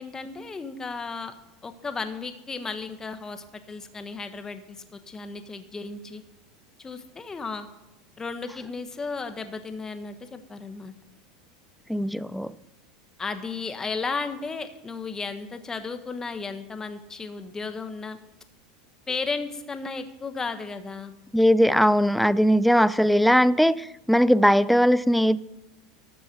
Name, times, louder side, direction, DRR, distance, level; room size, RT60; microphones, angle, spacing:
voice 1, 0.0-1.3 1.6-4.8 5.1-6.2 6.8-7.7 8.2-10.9 13.2-18.2 19.1-21.1, left 4 dB, 20° left, 1.3 m, -34 dB
voice 2, 11.9-12.5 21.3-25.4, equal, ahead, 0.4 m, -20 dB
13.0 x 7.0 x 6.8 m
hypercardioid pair, 105°, 3 cm